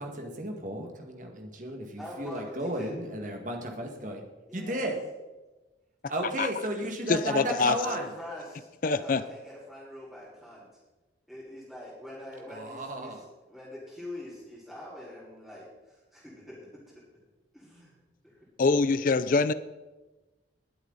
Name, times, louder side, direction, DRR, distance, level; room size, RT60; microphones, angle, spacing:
voice 1, 0.0-4.2 4.5-5.0 6.1-8.1 12.5-13.2, right 1 dB, 45° right, 3 dB, 2.0 m, -34 dB
voice 2, 2.0-2.9 4.5-4.9 7.8-10.7 11.3-16.6 17.5-17.9 18.2-18.4, left 1 dB, ahead, -11 dB, 4.1 m, -44 dB
voice 3, 7.1-7.8 8.8-9.2 18.6-19.5, left 4 dB, 45° left, 14 dB, 0.4 m, -24 dB
20.5 x 8.1 x 4.1 m, 1.1 s
head